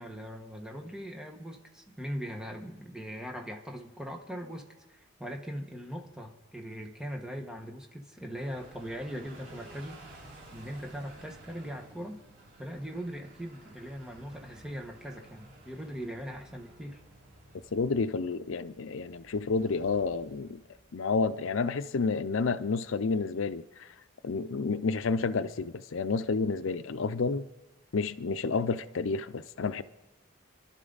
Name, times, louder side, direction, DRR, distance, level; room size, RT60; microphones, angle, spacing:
voice 1, 0.0-10.0 10.5-12.2 12.6-17.0, equal, 5° right, 1.3 m, -40 dB
sound 1, 8.3-20.9, right 2 dB, 50° right, 5.2 m, -54 dB
voice 2, 17.7-20.6 20.9-23.9 24.2-27.5 27.9-29.8, left 4 dB, 80° left, 0.5 m, -30 dB
28.0 x 12.0 x 4.0 m
head